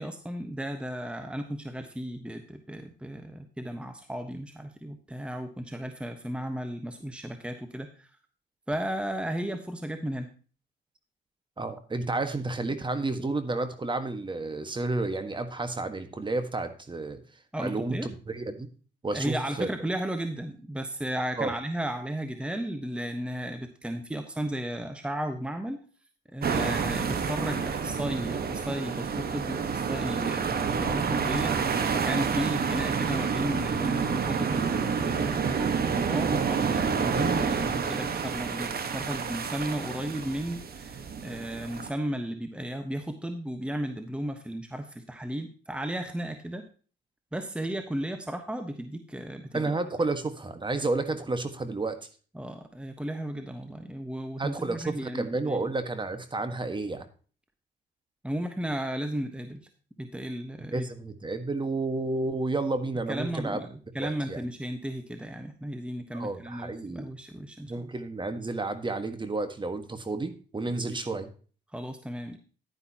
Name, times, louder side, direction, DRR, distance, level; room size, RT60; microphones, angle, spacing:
voice 1, 0.0-8.1 8.7-10.3 17.5-18.1 19.1-25.8 26.3-46.6 47.3-49.7 52.3-55.6 58.2-59.7 60.0-60.9 63.1-67.9 70.9-71.0 71.7-72.4, right 1 dB, 5° right, 7 dB, 1.2 m, -34 dB
voice 2, 11.6-17.2 17.6-18.7 19.0-19.7 21.4-21.5 49.5-52.0 54.4-57.0 60.7-63.6 64.0-64.4 66.1-67.1 67.7-71.3, right 2 dB, 25° right, 9 dB, 1.5 m, -31 dB
sound 1, 26.4-41.9, right 6 dB, 50° right, 1.4 m, -29 dB
10.5 x 9.9 x 2.9 m, 0.38 s
cardioid pair, 90°, 20 cm